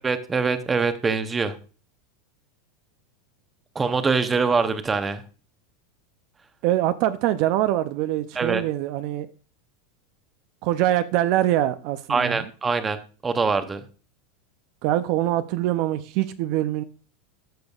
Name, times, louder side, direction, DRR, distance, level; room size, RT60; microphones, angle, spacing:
voice 1, 0.0-1.6 3.7-5.2 8.4-8.6 12.1-13.8, right 4 dB, 15° right, 0.8 m, -24 dB
voice 2, 6.6-9.3 10.6-12.4 14.8-16.8, right 13 dB, 55° right, 0.4 m, -24 dB
13.5 x 5.2 x 2.4 m
supercardioid pair, 140°, 0 cm